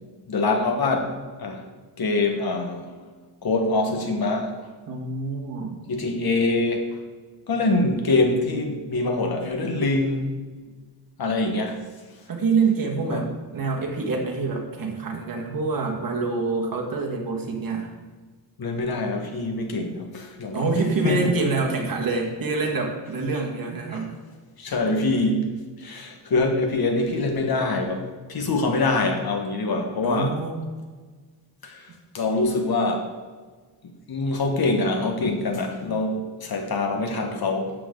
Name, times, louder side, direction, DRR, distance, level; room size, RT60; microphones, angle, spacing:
voice 1, 0.3-1.6 2.0-2.9 3.4-4.5 5.9-6.8 7.5-10.3 11.2-11.8 13.1-13.2 18.6-21.2 23.9-24.0 24.6-25.4 25.8-30.4 31.6-31.9 32.1-33.1 34.1-37.7, left 2 dB, 55° left, 4 dB, 1.6 m, -24 dB
voice 2, 4.9-5.8 12.3-17.9 20.5-24.1 30.0-30.7, right 4 dB, 50° right, 0 dB, 2.0 m, -26 dB
12.5 x 7.6 x 3.9 m, 1.4 s
wide cardioid pair, 135°, 43 cm